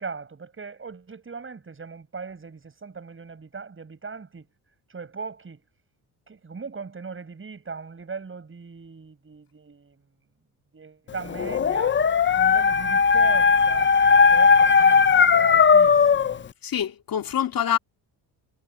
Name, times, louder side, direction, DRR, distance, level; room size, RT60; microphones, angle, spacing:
voice 1, 0.0-4.5 4.9-5.6 6.3-10.0 10.7-12.0 12.4-14.0 14.3-16.4, right 5 dB, 30° right, 7.5 m, -38 dB
Dog, 11.3-16.4, left 5 dB, 25° left, 0.6 m, -18 dB
voice 2, 16.6-17.8, left 10 dB, 55° left, 2.4 m, -25 dB
cardioid pair, 100°, 43 cm